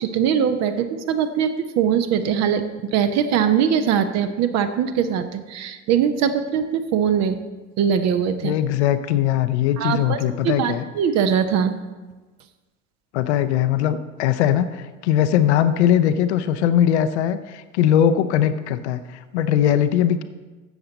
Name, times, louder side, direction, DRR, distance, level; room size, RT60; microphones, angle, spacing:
voice 1, 0.0-2.6 2.9-7.4 7.8-8.6 9.8-10.2 10.4-11.7, right 8 dB, 45° right, 9 dB, 0.9 m, -21 dB
voice 2, 8.4-10.8 13.1-20.2, left 10 dB, 60° left, 10 dB, 0.7 m, -20 dB
13.0 x 7.7 x 4.0 m, 1.2 s
figure-of-eight pair, 65°, 38 cm